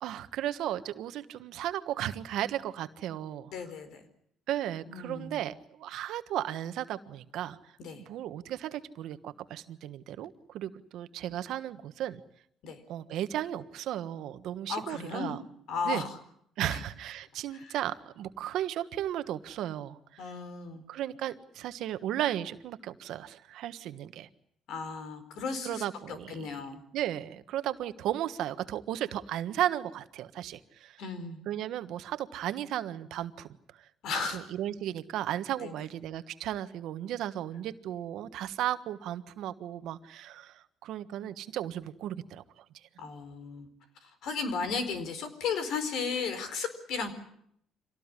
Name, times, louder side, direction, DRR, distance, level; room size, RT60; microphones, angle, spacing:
voice 1, 0.0-3.5 4.5-7.6 8.0-12.2 12.9-15.4 15.8-16.1 16.6-20.2 20.9-24.3 25.6-26.5 26.9-31.0 31.5-33.5 33.8-33.9 34.3-42.6, right 12 dB, 75° right, 11 dB, 1.4 m, -35 dB
voice 2, 3.5-4.0 4.9-5.4 7.8-8.0 12.6-12.8 14.7-15.4 15.7-16.2 16.6-16.8 17.5-17.8 20.2-20.8 24.7-26.8 31.0-31.4 34.0-34.4 35.6-35.7 43.0-43.7 44.0-47.1, left 5 dB, 70° left, 10 dB, 4.5 m, -35 dB
25.5 x 18.0 x 9.9 m, 0.72 s
cardioid pair, 110°, 0 cm